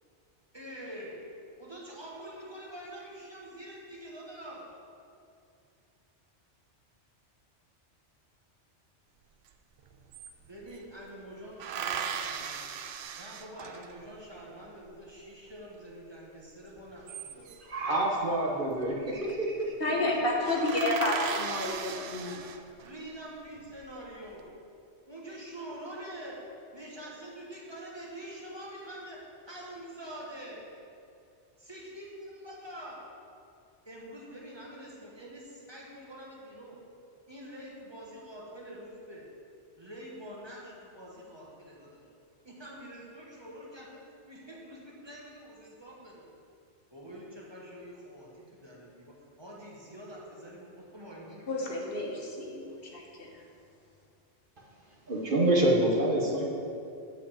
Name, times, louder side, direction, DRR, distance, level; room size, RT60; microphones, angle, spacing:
voice 1, 0.5-1.2 1.6-4.7 10.5-12.7 13.1-17.0 17.3-17.5 19.9-22.4 22.8-24.5 25.1-26.4 26.7-30.6 31.6-33.0 33.8-36.8 37.3-39.3 39.8-42.0 42.4-44.0 44.3-46.3 46.9-52.2, right 1 dB, 25° right, -4 dB, 1.3 m, -45 dB
sound 1, 9.5-9.6 9.8-10.8 11.6-14.1 16.8-17.8 18.9-19.3 19.6-19.7 20.1-20.2 20.4-23.0 23.6-24.2, right 7 dB, 70° right, 0.8 m, -38 dB
voice 2, 17.7-19.7 55.1-56.5, right 1 dB, 50° right, -2 dB, 1.1 m, -27 dB
voice 3, 19.8-22.3 51.5-53.4, left 2 dB, 55° left, -1 dB, 1.2 m, -30 dB
8.0 x 4.6 x 7.3 m, 2.5 s
omnidirectional pair, 1.2 m